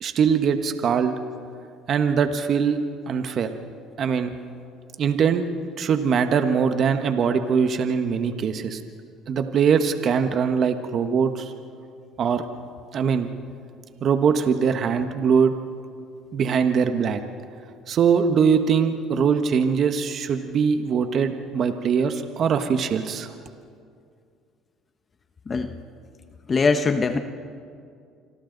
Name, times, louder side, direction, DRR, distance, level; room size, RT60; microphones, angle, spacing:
voice 1, 0.0-1.1 1.9-2.8 3.1-3.5 4.0-4.3 5.0-5.5 5.8-8.8 9.3-11.5 12.2-12.4 12.9-13.3 14.0-15.5 16.3-17.2 17.9-23.3, right 6 dB, 50° right, 8 dB, 1.3 m, -22 dB
voice 2, 26.5-27.2, left 4 dB, 30° left, 8 dB, 1.1 m, -21 dB
27.5 x 25.5 x 4.0 m, 2.3 s
supercardioid pair, 95°, 0 cm